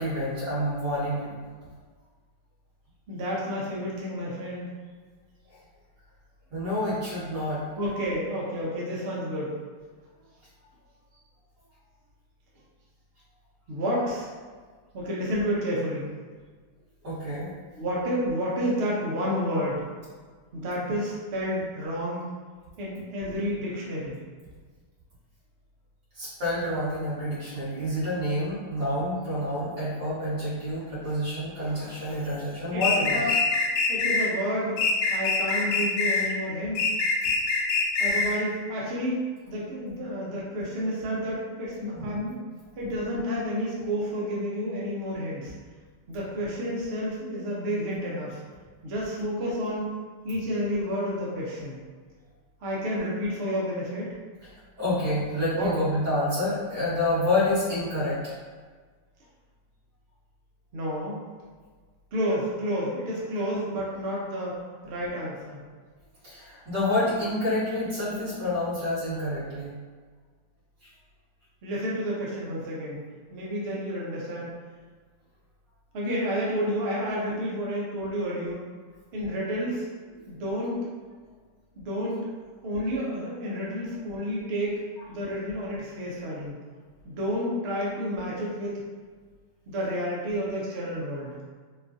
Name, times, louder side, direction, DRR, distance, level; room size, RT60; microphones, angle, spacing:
voice 1, 0.0-1.3 6.5-7.6 17.0-17.5 26.1-33.3 41.9-42.1 54.8-58.3 66.2-69.7, left 1 dB, 50° right, -12 dB, 2.1 m, -28 dB
voice 2, 3.1-4.7 7.8-9.6 13.7-14.3 14.9-16.1 17.8-19.9 20.5-22.2 22.8-24.2 32.7-33.3 33.9-34.8 35.1-36.8 38.0-42.4 42.8-45.5 46.1-48.4 48.8-49.9 50.2-51.8 52.6-54.1 55.5-55.7 60.7-61.2 62.1-64.6 64.8-65.6 71.6-73.0 73.3-74.5 75.9-78.6 79.1-79.9 80.3-80.8 81.8-82.3 82.6-84.8 85.1-86.6 87.0-88.8 89.7-91.3, equal, 85° right, -5 dB, 0.5 m, -30 dB
sound 1, 32.8-34.3 34.8-36.3 36.7-38.4, left 4 dB, 75° left, 1.2 m, -24 dB
4.2 x 2.4 x 2.6 m, 1.5 s
omnidirectional pair, 2.2 m